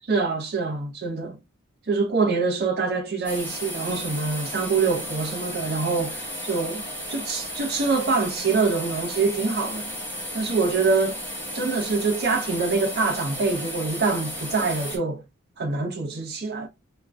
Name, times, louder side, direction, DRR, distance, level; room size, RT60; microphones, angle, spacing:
voice 1, 0.1-1.4 1.9-6.8 7.1-10.0 10.3-11.2 11.5-15.2 15.6-16.7, right 4 dB, 45° right, 0.6 m, -25 dB
sound 1, 3.2-15.0, equal, 10° left, 1.0 m, -34 dB
2.5 x 2.2 x 3.2 m
head